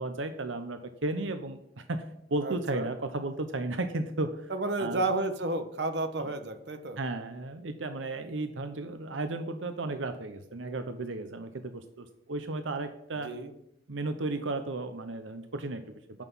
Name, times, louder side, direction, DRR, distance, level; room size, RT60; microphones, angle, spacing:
voice 1, 0.0-2.0 2.3-4.5 4.8-5.1 6.2-6.3 7.0-13.3 13.9-16.2, right 2 dB, 85° right, 8 dB, 0.8 m, -34 dB
voice 2, 2.4-2.9 4.5-7.0 13.2-13.5, right 2 dB, 60° right, 8 dB, 1.1 m, -31 dB
15.0 x 6.1 x 5.6 m, 0.76 s
head